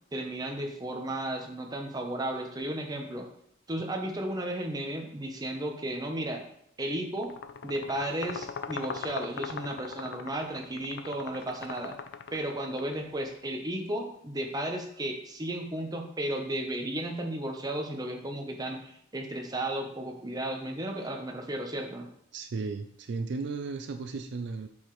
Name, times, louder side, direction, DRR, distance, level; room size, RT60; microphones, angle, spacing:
voice 1, 0.1-3.3 3.7-6.4 6.8-7.3 7.6-12.0 12.3-22.1, right 1 dB, 20° right, 2 dB, 0.8 m, -34 dB
sound 1, 7.2-13.0, left 6 dB, 60° left, 0.4 m, -40 dB
voice 2, 22.3-24.7, right 4 dB, 60° right, 7 dB, 0.4 m, -35 dB
7.2 x 4.8 x 3.1 m, 0.69 s
head